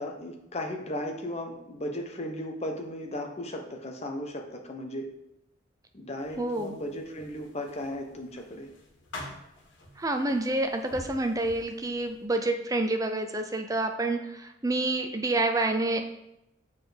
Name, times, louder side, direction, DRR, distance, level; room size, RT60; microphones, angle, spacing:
voice 1, 0.0-5.1 5.9-8.7, left 1 dB, 35° left, 3 dB, 1.0 m, -36 dB
sound 1, 6.2-12.3, left 1 dB, 80° left, 1.9 m, -47 dB
voice 2, 6.4-6.7 10.0-16.0, right 2 dB, 20° right, 5 dB, 0.6 m, -28 dB
7.2 x 4.2 x 5.1 m, 0.86 s
head